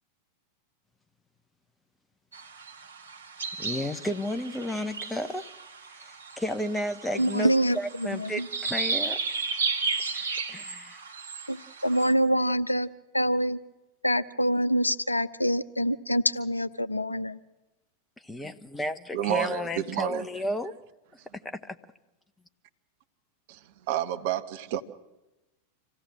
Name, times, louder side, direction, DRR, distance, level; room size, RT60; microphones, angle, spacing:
sound 1, 2.3-12.1, right 4 dB, 70° right, 1.9 m, -34 dB
voice 1, 3.6-5.4 6.0-9.2 9.9-11.0 18.2-20.7 21.3-21.8, left 1 dB, 10° left, 9 dB, 1.2 m, -33 dB
voice 2, 7.1-8.5 11.5-12.9 13.1-13.6 14.0-17.4, equal, 85° left, 14 dB, 0.7 m, -26 dB
voice 3, 19.1-20.3 23.5-23.6 23.9-24.8, right 12 dB, 50° right, 8 dB, 1.4 m, -29 dB
26.5 x 16.5 x 7.6 m, 1.0 s
figure-of-eight pair, 90°, 0 cm